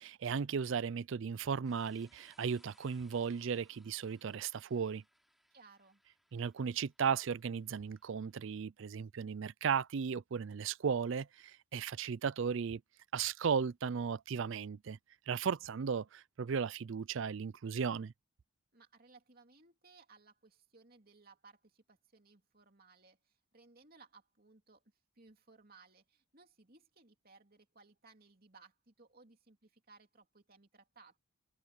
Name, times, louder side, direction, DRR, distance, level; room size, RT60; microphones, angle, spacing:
voice 1, 0.0-5.0 6.3-12.8 13.1-15.0 15.3-18.1, right 6 dB, 60° right, 0.4 m, -36 dB
sound 1, 1.6-8.6, equal, ahead, 2.9 m, -71 dB
voice 2, 5.5-6.0 18.7-24.8 25.1-31.2, right 4 dB, 45° right, 3.0 m, -62 dB
open air
head